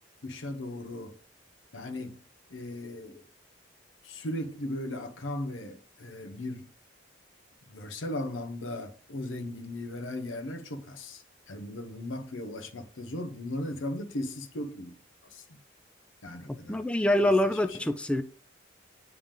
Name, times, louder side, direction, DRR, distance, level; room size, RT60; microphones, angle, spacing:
voice 1, 0.2-1.2 1.7-2.2 2.5-3.3 4.0-6.7 7.7-15.0 15.3-15.4 16.2-16.8 17.2-17.9, left 1 dB, 85° left, 0.9 m, -37 dB
voice 2, 16.5-18.2, left 1 dB, 5° left, 0.3 m, -25 dB
8.8 x 3.6 x 3.6 m
head